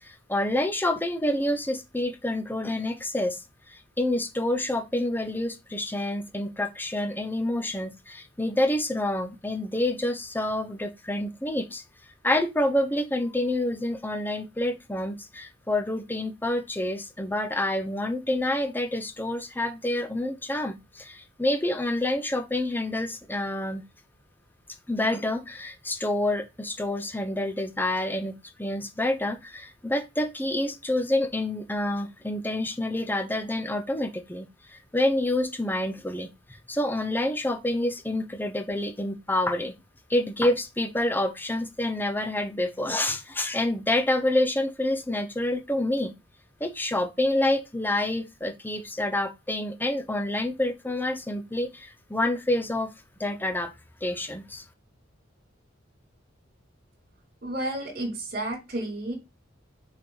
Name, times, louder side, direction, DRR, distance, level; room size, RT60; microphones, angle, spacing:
voice 1, 0.0-3.4 4.0-11.8 12.2-23.8 24.9-39.8 40.1-46.1 46.6-52.9 53.2-53.7 54.0-54.6, left 1 dB, 10° left, 0.9 m, -28 dB
voice 2, 57.4-59.1, right 1 dB, 50° right, 3.1 m, -31 dB
6.6 x 4.5 x 3.9 m
head